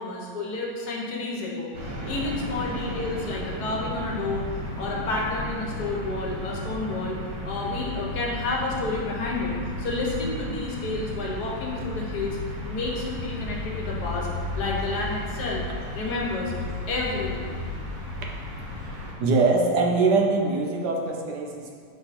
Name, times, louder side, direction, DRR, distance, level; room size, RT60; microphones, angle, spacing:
voice 1, 0.0-4.4 4.8-7.2 7.4-12.4 12.7-14.3 14.6-15.6 15.9-16.5 16.9-17.6, left 2 dB, 55° left, -2 dB, 1.3 m, -30 dB
sound 1, 1.7-19.1, left 1 dB, 45° right, 1.5 m, -34 dB
voice 2, 19.2-21.7, right 3 dB, 65° right, 0 dB, 1.2 m, -22 dB
7.2 x 3.7 x 4.1 m, 2.1 s
omnidirectional pair, 2.3 m